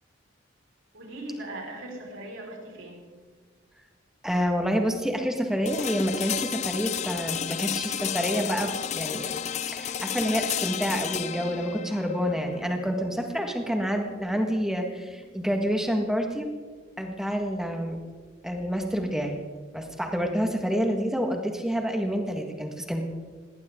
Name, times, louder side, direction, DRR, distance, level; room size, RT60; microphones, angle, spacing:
voice 1, 0.9-3.1, right 1 dB, 80° right, 0 dB, 4.9 m, -39 dB
voice 2, 4.2-9.3 9.7-16.5 17.0-18.0 18.4-19.4 19.7-23.0, equal, 5° right, 3 dB, 1.6 m, -28 dB
sound 1, 5.7-15.6, left 9 dB, 35° left, 0.3 m, -33 dB
19.5 x 18.0 x 3.8 m, 1.5 s
head